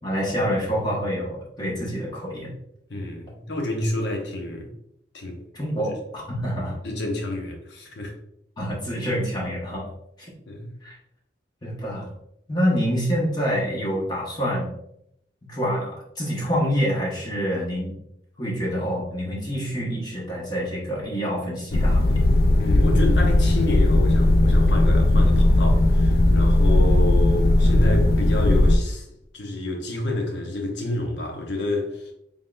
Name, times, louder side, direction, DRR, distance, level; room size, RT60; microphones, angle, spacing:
voice 1, 0.0-2.5 5.5-6.8 8.6-9.9 10.8-11.0 11.6-12.1 12.5-14.7 15.5-18.0 18.4-22.2, equal, 25° left, 1.2 m, -26 dB
voice 2, 2.9-4.7 5.1-5.4 6.8-8.1 10.5-10.7 22.6-29.0 29.3-32.1, left 1 dB, 85° left, 0.9 m, -29 dB
sound 1, 21.7-28.8, left 1 dB, 55° left, 0.4 m, -17 dB
3.9 x 3.5 x 2.5 m
head